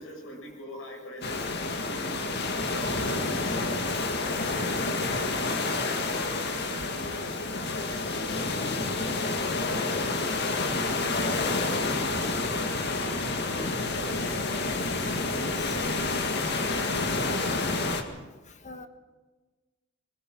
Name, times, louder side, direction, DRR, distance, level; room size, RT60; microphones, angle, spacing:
voice 1, 0.0-1.6 1.9-3.8 4.5-10.7 11.3-12.7 13.0-14.6 15.7-17.0, left 1 dB, 90° left, 1 dB, 7.5 m, -42 dB
sound 1, 1.2-18.0, left 3 dB, 55° left, 2.0 m, -29 dB
voice 2, 4.4-4.7 15.2-15.8 18.6-18.9, left 2 dB, 40° left, 8 dB, 1.6 m, -45 dB
21.5 x 21.5 x 6.2 m, 1.3 s
head